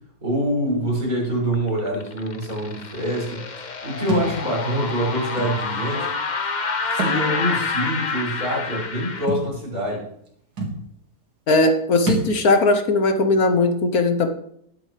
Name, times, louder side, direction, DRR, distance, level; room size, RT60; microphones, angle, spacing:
voice 1, 0.2-6.1 6.9-10.0, equal, 55° right, -4 dB, 6.7 m, -25 dB
sound 1, 1.5-9.3, left 4 dB, 35° left, 0.8 m, -28 dB
Thump thud, 4.1-4.3 5.4-5.5 6.9-7.2 7.6-7.7 9.3-9.5 10.3-10.4 10.6-10.8 12.0-12.3, right 2 dB, 75° right, 2.8 m, -25 dB
voice 2, 11.5-14.3, left 2 dB, 65° left, 7 dB, 1.5 m, -18 dB
21.0 x 7.9 x 3.3 m, 0.69 s
omnidirectional pair, 1.8 m